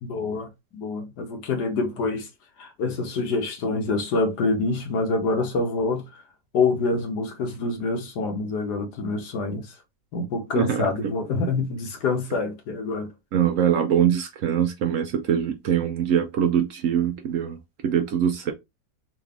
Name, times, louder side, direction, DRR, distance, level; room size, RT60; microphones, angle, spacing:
voice 1, 0.0-2.3 2.6-6.2 6.5-9.7 10.1-13.1, left 3 dB, 85° left, 1.6 m, -26 dB
voice 2, 10.6-10.9 13.3-18.5, right 9 dB, 70° right, 0.8 m, -23 dB
3.9 x 2.5 x 3.4 m
omnidirectional pair, 1.7 m